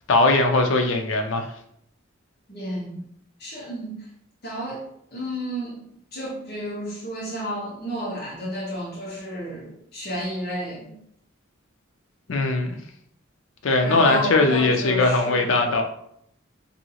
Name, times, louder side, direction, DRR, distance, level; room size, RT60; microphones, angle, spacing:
voice 1, 0.1-1.5 12.3-12.8 13.6-15.8, left 2 dB, 70° left, 4 dB, 0.5 m, -20 dB
voice 2, 2.5-3.0 3.4-3.9 4.4-4.8 5.1-5.8 6.1-10.9 13.8-15.6, equal, 50° left, -4 dB, 1.2 m, -31 dB
2.7 x 2.7 x 2.9 m, 0.71 s
head